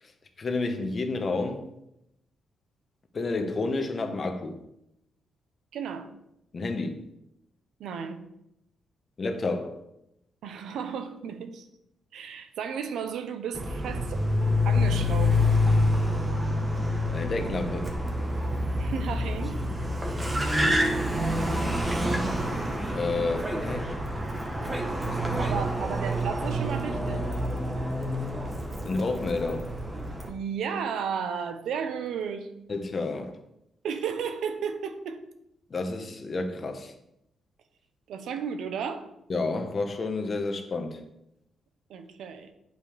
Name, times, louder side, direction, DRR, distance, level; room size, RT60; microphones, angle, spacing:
voice 1, 0.4-1.7 3.1-4.6 6.5-7.0 9.2-9.8 17.1-17.9 22.9-23.9 24.9-25.5 28.8-29.7 32.7-33.3 35.7-36.9 39.3-41.0, left 3 dB, 35° left, 1.1 m, -30 dB
voice 2, 5.7-6.1 7.8-8.2 10.4-11.7 12.1-14.2 14.6-15.4 18.8-19.6 25.4-27.3 30.3-32.5 33.8-35.2 38.1-39.1 41.9-42.5, right 7 dB, 80° right, 1.0 m, -33 dB
Car, 13.5-30.3, left 1 dB, 20° right, 1.3 m, -27 dB
9.1 x 5.7 x 5.0 m
cardioid pair, 130°, 0 cm